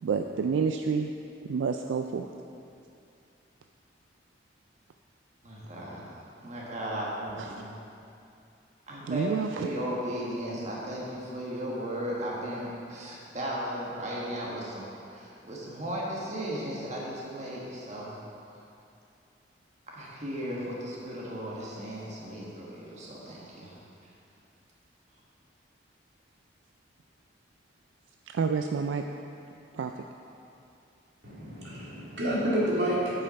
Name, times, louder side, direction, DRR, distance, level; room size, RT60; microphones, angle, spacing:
voice 1, 0.0-1.1 1.4-2.3 7.4-7.5 9.1-9.7 28.3-29.0 29.7-29.9, right 5 dB, 85° right, 5 dB, 0.3 m, -29 dB
voice 2, 5.4-7.7 8.9-9.3 9.5-18.2 19.9-23.8, equal, 40° right, -5 dB, 1.4 m, -36 dB
voice 3, 31.2-33.2, equal, 65° right, -7 dB, 2.2 m, -29 dB
8.5 x 5.6 x 5.3 m, 2.6 s
head